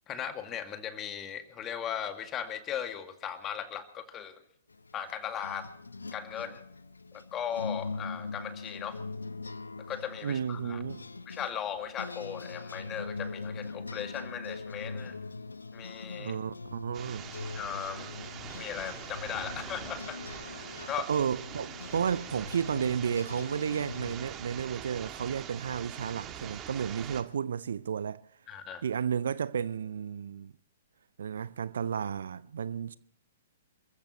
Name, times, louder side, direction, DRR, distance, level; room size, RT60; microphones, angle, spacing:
voice 1, 0.1-4.4 4.9-5.7 6.1-6.6 7.1-9.0 9.9-10.8 11.3-15.2 15.7-16.4 17.5-18.1 18.5-21.1 28.5-28.8, left 9 dB, 20° left, 2.1 m, -38 dB
sound 1, 4.7-24.2, left 3 dB, 75° left, 0.7 m, -42 dB
voice 2, 10.2-11.1 16.2-17.3 21.1-28.2 28.8-30.5 31.2-33.0, right 7 dB, 60° right, 0.6 m, -32 dB
sound 2, 16.9-27.2, right 9 dB, 25° right, 1.7 m, -44 dB
28.5 x 15.0 x 3.0 m
figure-of-eight pair, 115°, 0 cm